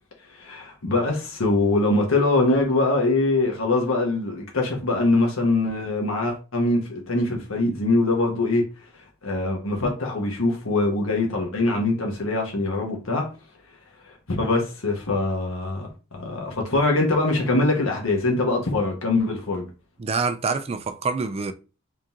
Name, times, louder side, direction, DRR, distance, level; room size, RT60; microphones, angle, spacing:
voice 1, 0.3-8.7 9.2-13.3 14.0-19.6, left 2 dB, 70° left, 1.2 m, -23 dB
voice 2, 20.0-21.5, right 4 dB, 30° right, 0.4 m, -26 dB
3.7 x 2.9 x 3.6 m
head